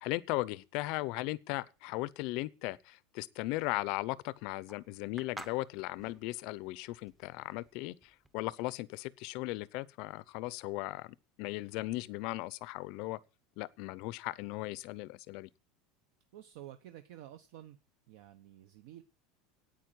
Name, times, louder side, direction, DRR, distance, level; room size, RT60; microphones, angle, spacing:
voice 1, 0.0-13.2 13.6-15.5, left 20 dB, 45° left, 0.6 m, -37 dB
sound 1, 3.6-8.6, right 1 dB, 5° right, 0.8 m, -51 dB
voice 2, 16.3-17.8 18.1-19.0, right 12 dB, 60° right, 0.9 m, -51 dB
9.3 x 8.9 x 9.1 m
supercardioid pair, 175°, 0 cm